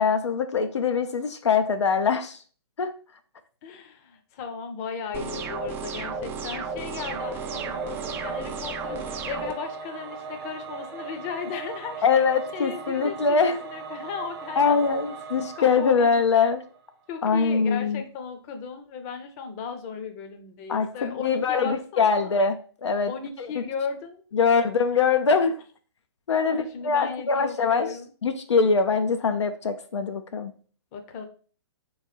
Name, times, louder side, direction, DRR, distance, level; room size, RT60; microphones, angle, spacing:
voice 1, 0.0-2.4 2.8-2.9 12.0-13.6 14.6-16.6 17.2-18.0 20.7-22.6 22.8-23.1 23.4-23.5 24.3-25.6 26.3-27.9 28.2-30.5, left 5 dB, 85° left, 7 dB, 0.5 m, -23 dB
voice 2, 3.6-12.2 12.5-14.8 15.6-16.1 17.1-22.4 23.1-24.7 24.9-25.0 26.4-28.1 30.9-31.3, left 6 dB, 35° left, 6 dB, 0.7 m, -36 dB
sound 1, 5.1-9.5, right 4 dB, 15° right, 0.3 m, -33 dB
Singing / Musical instrument, 6.8-16.9, right 5 dB, 45° right, 0.9 m, -39 dB
3.5 x 3.2 x 4.1 m, 0.41 s
hypercardioid pair, 130°, 14 cm